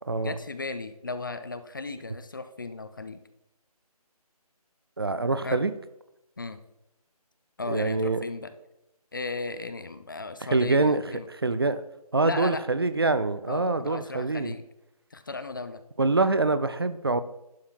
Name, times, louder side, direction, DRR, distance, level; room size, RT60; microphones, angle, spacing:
voice 1, 0.2-3.2 5.4-5.6 6.4-6.6 7.6-8.5 9.1-11.2 12.2-12.6 13.5-14.6 15.1-15.8, left 3 dB, 30° left, 11 dB, 0.6 m, -36 dB
voice 2, 5.0-5.7 7.7-8.2 10.4-11.0 11.3-11.8 12.1-14.5 16.0-17.2, right 3 dB, 40° right, 13 dB, 0.5 m, -25 dB
11.0 x 6.8 x 4.5 m, 0.88 s
figure-of-eight pair, 155°, 20 cm